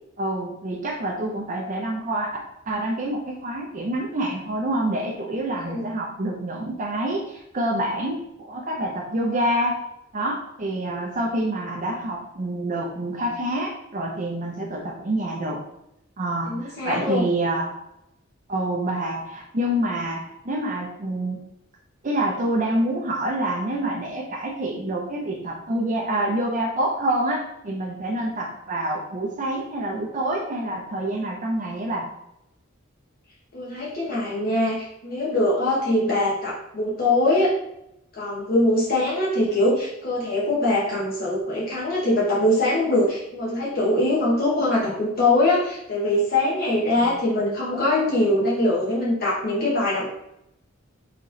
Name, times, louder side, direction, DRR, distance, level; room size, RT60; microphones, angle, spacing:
voice 1, 0.2-2.4 2.7-9.8 10.1-15.6 16.2-17.7 18.5-21.4 22.0-32.1, right 1 dB, 40° right, -1 dB, 0.6 m, -27 dB
voice 2, 5.5-5.9 16.5-17.2 33.5-37.5 38.1-50.1, left 1 dB, 50° left, -6 dB, 1.0 m, -22 dB
4.2 x 3.1 x 3.8 m, 0.81 s
head